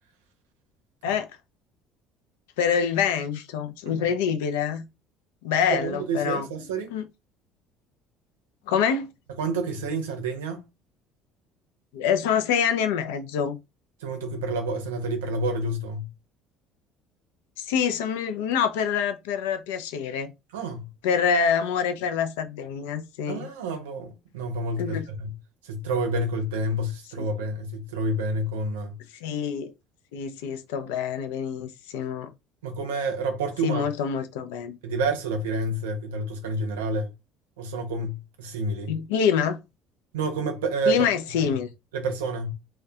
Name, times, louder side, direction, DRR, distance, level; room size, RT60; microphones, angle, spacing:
voice 1, 2.6-4.8 5.4-6.5 6.9-7.0 8.7-9.1 11.9-13.6 17.6-20.3 21.0-23.5 24.8-25.1 27.2-27.3 29.2-29.7 30.1-32.3 33.6-34.8 38.9-39.6 40.9-41.7, left 7 dB, 85° left, 0.4 m, -26 dB
voice 2, 5.7-6.9 9.4-10.6 14.0-16.1 20.5-20.9 23.3-25.3 25.6-29.0 32.6-33.9 34.8-37.1 37.6-39.0 40.1-41.1 41.3-41.5 41.9-42.5, right 2 dB, 90° right, 0.5 m, -29 dB
2.3 x 2.1 x 2.6 m
hypercardioid pair, 70°, 0 cm